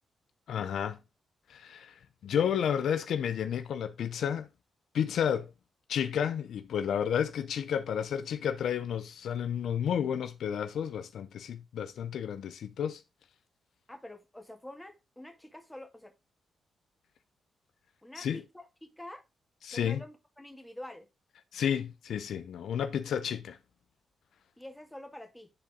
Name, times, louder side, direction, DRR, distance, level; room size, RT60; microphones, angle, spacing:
voice 1, 0.5-1.0 1.5-4.5 4.9-5.5 5.9-13.0 18.2-18.4 19.6-20.0 21.5-23.6, left 8 dB, 75° left, 0.6 m, -31 dB
voice 2, 13.9-16.1 18.0-19.2 19.7-21.1 24.6-25.5, left 1 dB, 5° left, 1.9 m, -47 dB
10.0 x 4.0 x 3.6 m
cardioid pair, 65°, 0 cm